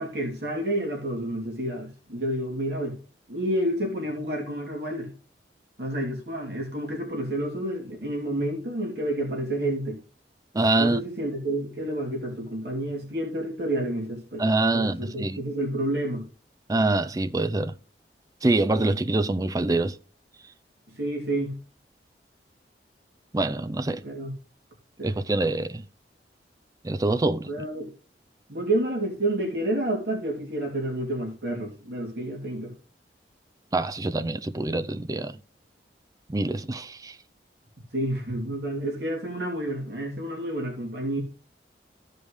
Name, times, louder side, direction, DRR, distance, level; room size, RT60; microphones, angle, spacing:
voice 1, 0.0-3.0 3.3-5.1 5.8-10.0 10.8-14.4 14.7-16.2 20.9-21.5 24.0-24.3 25.0-25.1 27.5-27.9 28.5-32.7 37.9-41.2, right 1 dB, 70° right, 2.9 m, -29 dB
voice 2, 10.5-11.0 14.4-15.4 16.7-17.7 18.4-20.0 23.3-24.0 25.0-25.8 26.8-27.5 33.7-35.4 36.3-37.2, right 2 dB, 20° right, 0.4 m, -25 dB
15.0 x 5.3 x 3.2 m
head